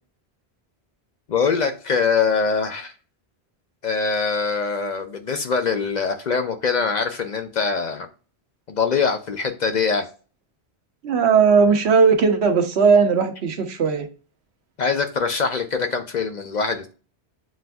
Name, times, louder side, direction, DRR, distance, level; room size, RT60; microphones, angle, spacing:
voice 1, 1.3-2.9 3.8-8.1 8.7-10.1 14.8-16.9, left 5 dB, 55° left, 6 dB, 0.6 m, -23 dB
voice 2, 11.0-14.1, right 5 dB, 85° right, 6 dB, 1.0 m, -17 dB
7.4 x 2.5 x 2.2 m, 0.35 s
omnidirectional pair, 1.1 m